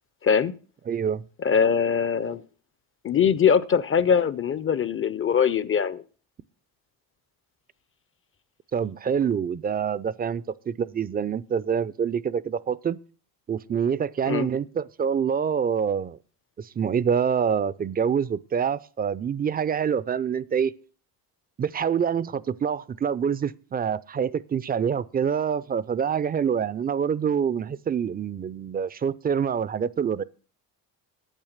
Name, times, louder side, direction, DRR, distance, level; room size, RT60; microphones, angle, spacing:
voice 1, 0.2-0.5 1.4-2.4 3.0-6.0 14.3-14.5, left 7 dB, 30° left, 0.5 m, -22 dB
voice 2, 0.9-1.2 8.7-13.0 13.5-16.2 16.6-20.7 21.6-30.2, right 7 dB, 25° right, 0.4 m, -26 dB
9.0 x 8.4 x 6.5 m
cardioid pair, 95°, 41 cm